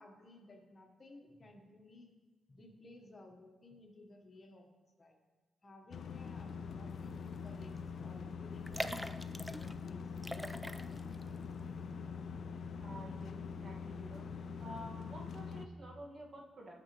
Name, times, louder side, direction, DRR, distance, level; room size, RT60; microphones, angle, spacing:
voice 1, 0.0-2.1 2.5-5.2 5.6-10.6, left 2 dB, 40° left, 3 dB, 1.1 m, -58 dB
sound 1, 5.9-15.7, left 5 dB, 65° left, 0.4 m, -44 dB
sound 2, 7.3-7.5 7.8-7.9 8.6-9.8 10.2-11.2 11.6-11.7, equal, ahead, 0.4 m, -42 dB
voice 2, 12.8-14.3 14.6-16.8, right 1 dB, 55° right, -2 dB, 1.6 m, -51 dB
8.6 x 6.0 x 3.0 m, 1.3 s
cardioid pair, 65°, 0 cm